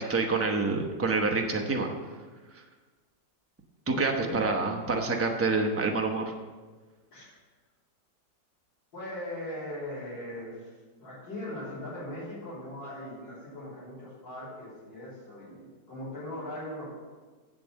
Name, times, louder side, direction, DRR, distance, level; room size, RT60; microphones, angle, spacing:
voice 1, 0.0-1.9 2.5-2.6 3.9-6.2, right 3 dB, 20° right, 2 dB, 0.4 m, -27 dB
voice 2, 3.9-4.4 7.1-7.2 8.9-10.7 11.0-17.0, left 1 dB, 80° left, -11 dB, 4.1 m, -39 dB
7.7 x 7.2 x 7.5 m, 1.4 s
omnidirectional pair, 2.0 m